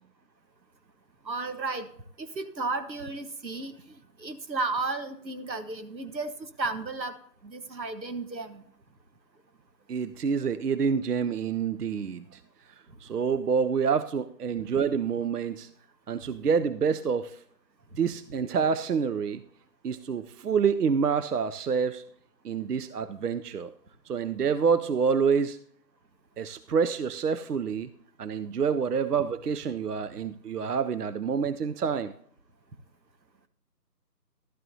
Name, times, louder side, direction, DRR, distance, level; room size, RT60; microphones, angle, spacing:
voice 1, 1.2-1.9 2.2-3.7 4.2-7.2 7.4-8.6, right 3 dB, 90° right, 9 dB, 1.3 m, -33 dB
voice 2, 9.9-12.4 13.0-15.7 16.1-17.4 18.0-19.4 19.8-22.0 22.4-23.7 24.1-25.6 26.4-27.9 28.2-32.1, right 6 dB, 65° right, 13 dB, 0.6 m, -27 dB
12.5 x 12.5 x 2.7 m, 0.65 s
figure-of-eight pair, 165°, 50 cm